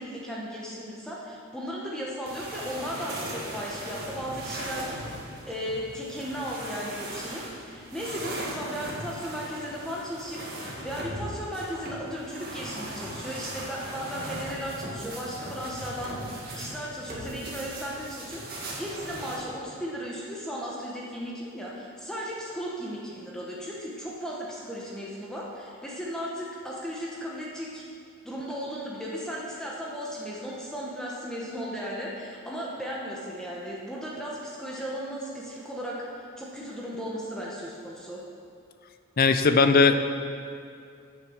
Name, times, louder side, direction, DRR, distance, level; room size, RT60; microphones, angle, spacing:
voice 1, 0.0-4.9 5.5-27.8 28.2-36.1 36.4-38.2, equal, 5° left, -5 dB, 1.0 m, -36 dB
sound 1, 2.3-19.4, right 1 dB, 45° right, 2.1 m, -38 dB
voice 2, 39.2-40.1, left 4 dB, 40° left, 8 dB, 0.5 m, -19 dB
9.2 x 6.8 x 7.1 m, 2.4 s
head